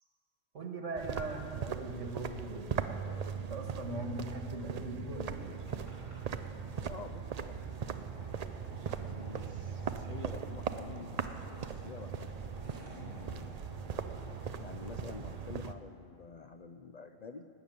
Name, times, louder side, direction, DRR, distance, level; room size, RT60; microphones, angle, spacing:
voice 1, 0.5-5.6, right 2 dB, 70° right, 3 dB, 1.9 m, -40 dB
sound 1, 1.0-15.7, right 7 dB, 55° right, 0.4 m, -39 dB
sound 2, 5.3-15.4, equal, 70° left, 4.5 m, -51 dB
voice 2, 6.9-8.0 9.0-12.3 12.7-13.5 14.5-17.5, left 5 dB, 50° left, 7 dB, 0.5 m, -48 dB
18.5 x 6.9 x 9.2 m, 2.4 s
omnidirectional pair, 1.3 m